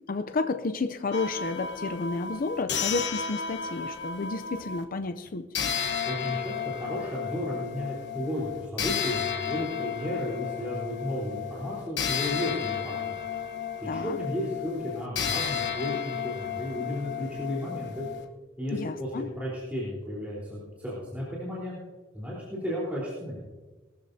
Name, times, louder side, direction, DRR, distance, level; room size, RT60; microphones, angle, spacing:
voice 1, 0.1-5.5 13.9-14.2 18.7-19.3, left 3 dB, 45° left, 8 dB, 0.5 m, -31 dB
sound 1, 1.1-4.8 5.5-18.2, left 7 dB, 60° left, 1.2 m, -33 dB
voice 2, 6.0-13.2 13.8-18.1 18.6-21.8 22.1-23.4, left 1 dB, 10° right, -8 dB, 3.8 m, -33 dB
21.0 x 13.0 x 2.7 m, 1.3 s
head